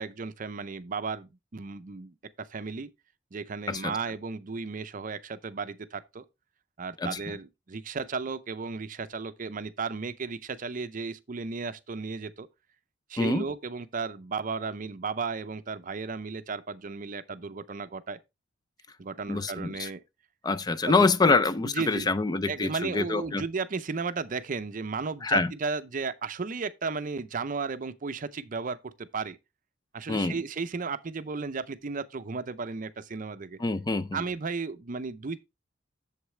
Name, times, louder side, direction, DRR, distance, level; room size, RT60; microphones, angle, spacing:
voice 1, 0.0-2.9 3.3-6.2 6.8-12.5 13.1-18.2 19.0-20.0 20.9-22.1 22.4-29.4 29.9-33.6 34.1-35.4, right 4 dB, 40° right, 0.5 m, -34 dB
voice 2, 19.3-19.9 20.4-23.4 25.2-25.5 30.1-30.4 33.6-34.2, left 3 dB, 20° left, 0.4 m, -26 dB
8.0 x 7.3 x 3.2 m
head